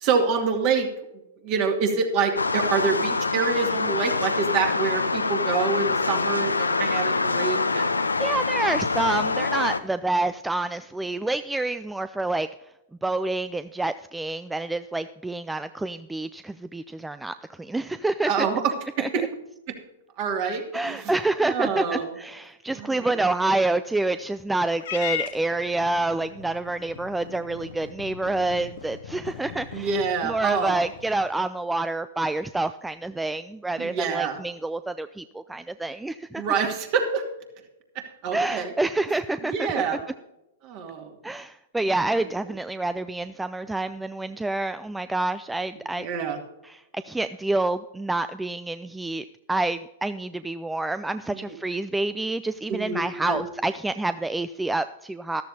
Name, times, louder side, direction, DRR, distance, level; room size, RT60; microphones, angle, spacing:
voice 1, 0.0-0.9 1.4-8.0 18.2-19.2 20.2-21.1 21.4-22.1 22.7-23.2 29.7-30.9 33.8-34.4 36.4-37.2 38.2-38.7 39.5-40.0 40.6-41.1 42.1-42.3 45.9-46.4 51.3-51.6 52.7-53.4, right 5 dB, 45° right, 3 dB, 2.4 m, -26 dB
sound 1, 2.4-9.8, left 3 dB, 90° left, 0.7 m, -25 dB
voice 2, 8.2-12.5 13.0-18.5 19.0-19.1 20.7-29.9 30.2-36.4 38.3-40.0 41.2-46.1 46.6-55.4, right 2 dB, 5° right, 12 dB, 0.4 m, -28 dB
Purr / Meow, 24.8-31.3, left 10 dB, 60° left, 1.0 m, -38 dB
13.5 x 13.0 x 2.8 m, 0.94 s
figure-of-eight pair, 105°, 0 cm